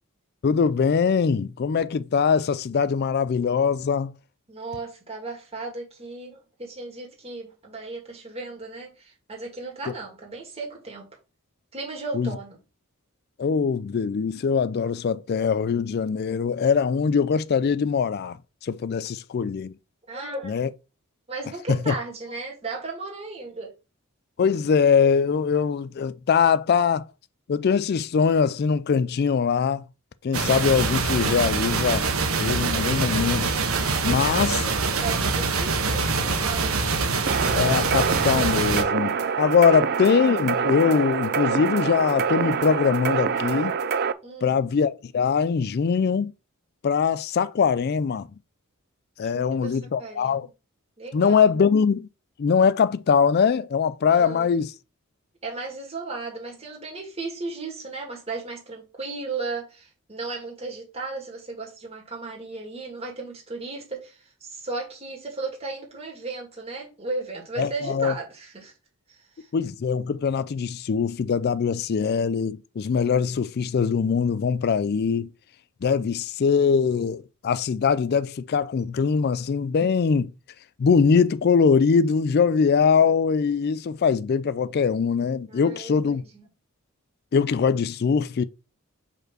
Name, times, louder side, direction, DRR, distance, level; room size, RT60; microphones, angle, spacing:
voice 1, 0.4-4.1 12.1-12.3 13.4-18.4 18.6-19.7 20.4-20.7 21.9-22.0 24.4-27.1 27.5-29.8 30.2-32.1 32.4-33.5 34.0-34.6 37.5-43.7 44.4-46.3 46.8-48.3 49.2-50.5 51.1-52.1 52.4-54.7 67.6-68.1 69.5-75.3 75.8-80.3 80.8-86.2 87.3-88.4, left 6 dB, 50° left, 0.4 m, -22 dB
voice 2, 4.5-11.1 11.7-12.6 20.1-20.6 21.3-23.7 34.2-37.0 44.2-44.6 49.2-50.5 51.0-51.5 54.1-54.6 55.4-68.7 69.1-69.5 85.5-86.5, right 3 dB, 30° right, 2.4 m, -35 dB
sound 1, 30.3-38.8, right 4 dB, 80° right, 1.2 m, -24 dB
sound 2, 37.3-44.1, right 6 dB, 50° right, 0.5 m, -26 dB
5.3 x 4.3 x 6.0 m
head